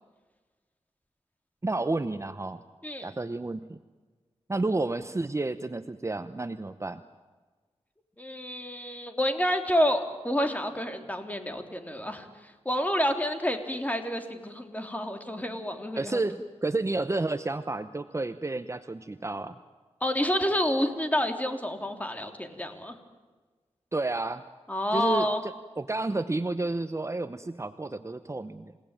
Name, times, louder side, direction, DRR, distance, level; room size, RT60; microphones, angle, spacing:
voice 1, 1.6-2.6 3.0-3.8 4.5-7.0 15.9-19.6 23.9-24.4 24.9-28.7, right 2 dB, 25° right, 11 dB, 0.9 m, -31 dB
voice 2, 8.2-12.3 12.6-16.2 20.0-22.9 24.7-25.4, equal, 15° left, 5 dB, 3.4 m, -29 dB
28.5 x 18.0 x 9.2 m, 1.4 s
cardioid pair, 60°, 11 cm